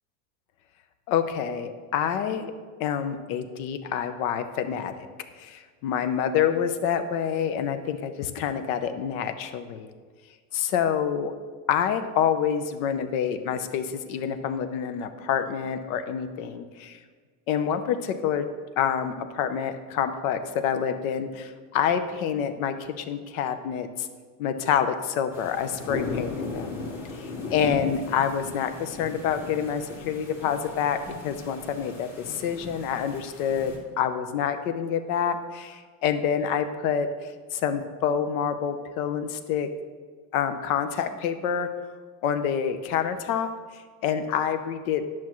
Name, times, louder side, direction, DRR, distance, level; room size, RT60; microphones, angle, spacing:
voice 1, 1.1-2.5 2.8-5.1 5.4-9.9 10.5-11.3 11.7-17.0 17.5-18.5 18.8-24.1 24.4-26.8 27.2-31.0 31.2-39.7 40.3-41.7 42.2-43.5 44.0-45.0, left 8 dB, 80° left, 9 dB, 0.8 m, -27 dB
sound 1, 25.3-33.8, left 3 dB, 45° left, 1.8 m, -37 dB
10.5 x 5.9 x 3.1 m, 1.5 s
cardioid pair, 155°, 41 cm